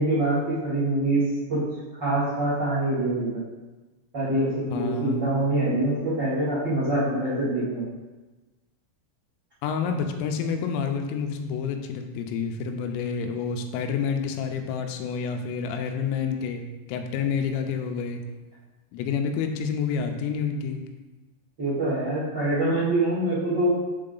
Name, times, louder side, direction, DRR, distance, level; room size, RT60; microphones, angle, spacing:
voice 1, 0.0-1.6 2.0-3.4 4.1-7.9 21.6-23.7, right 1 dB, 70° right, -11 dB, 1.0 m, -25 dB
voice 2, 4.7-5.2 9.6-16.6 16.9-18.2 18.9-20.8, left 6 dB, 85° left, 5 dB, 3.3 m, -28 dB
7.6 x 3.6 x 3.8 m, 1.2 s
omnidirectional pair, 5.9 m